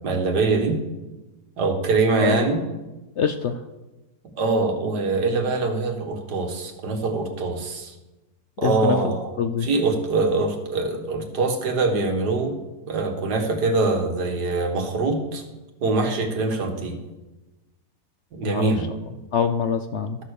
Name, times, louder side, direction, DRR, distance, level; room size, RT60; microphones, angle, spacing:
voice 1, 0.0-0.8 1.6-2.6 4.4-7.9 8.6-9.3 9.6-12.6 12.9-15.4 15.8-17.0 18.3-18.9, right 3 dB, 85° right, 4 dB, 2.1 m, -23 dB
voice 2, 3.2-3.5 8.6-9.1 9.4-9.7 18.5-18.7 19.3-20.2, left 6 dB, 65° left, 9 dB, 0.7 m, -24 dB
13.0 x 6.7 x 6.6 m, 1.1 s
omnidirectional pair, 1.7 m